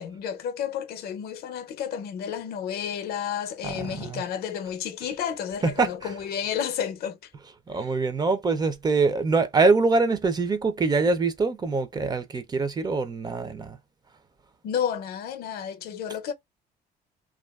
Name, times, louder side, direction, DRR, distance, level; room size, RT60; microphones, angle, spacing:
voice 1, 0.0-7.3 7.8-7.9 14.6-16.3, left 8 dB, 70° left, 0.5 m, -31 dB
voice 2, 3.6-4.2 5.6-6.1 7.7-13.8, right 3 dB, 25° right, 0.4 m, -24 dB
2.6 x 2.3 x 2.3 m
cardioid pair, 110°, 17 cm